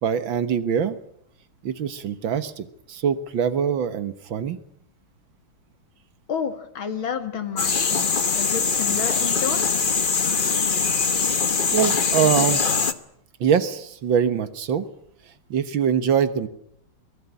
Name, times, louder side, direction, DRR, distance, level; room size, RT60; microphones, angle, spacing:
voice 1, 0.0-1.0 1.6-4.6 11.3-12.6 13.4-14.8 15.5-16.5, right 8 dB, 65° right, 13 dB, 2.0 m, -23 dB
voice 2, 6.3-9.6, left 7 dB, 65° left, 9 dB, 2.8 m, -30 dB
sound 1, 7.6-12.9, left 5 dB, 35° left, 0.9 m, -22 dB
23.0 x 16.5 x 9.9 m, 0.73 s
omnidirectional pair, 2.3 m